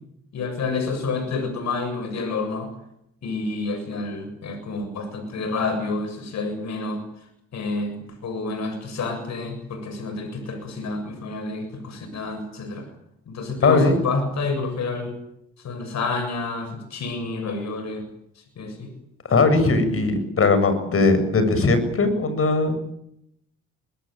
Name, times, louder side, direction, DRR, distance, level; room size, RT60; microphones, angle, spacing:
voice 1, 0.3-2.7 3.2-7.0 7.5-12.9 13.3-15.1 15.6-18.0 18.4-18.9 19.6-19.7, left 3 dB, 65° left, 7 dB, 7.2 m, -29 dB
voice 2, 13.6-13.9 19.3-22.8, left 3 dB, 45° left, 11 dB, 7.1 m, -19 dB
24.5 x 21.5 x 9.0 m, 0.76 s
cardioid pair, 90°, 30 cm